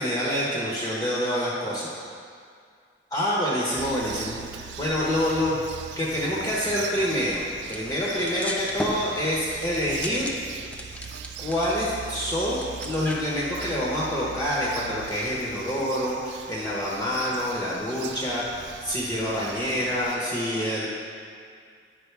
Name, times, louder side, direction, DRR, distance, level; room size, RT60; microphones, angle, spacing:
voice 1, 0.0-1.9 3.1-5.6 6.0-7.4 7.7-10.7 11.4-20.9, equal, 25° left, -7 dB, 1.1 m, -27 dB
Bird vocalization bird call bird song, 3.8-20.2, right 7 dB, 70° right, 0.3 m, -41 dB
sound 1, 6.5-13.3, left 1 dB, 5° left, 0.4 m, -38 dB
9.4 x 5.4 x 3.4 m, 2.2 s
head